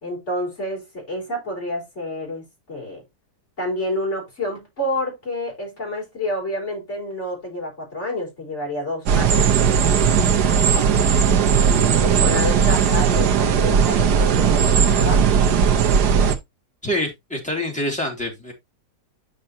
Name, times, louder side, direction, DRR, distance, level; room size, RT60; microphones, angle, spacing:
voice 1, 0.0-3.0 3.6-9.6 11.7-15.3, left 1 dB, 40° left, 5.1 m, -29 dB
sound 1, 9.1-16.4, right 7 dB, 65° right, 1.4 m, -17 dB
voice 2, 16.8-18.5, left 1 dB, 5° left, 2.6 m, -26 dB
9.4 x 5.6 x 2.7 m
omnidirectional pair, 1.9 m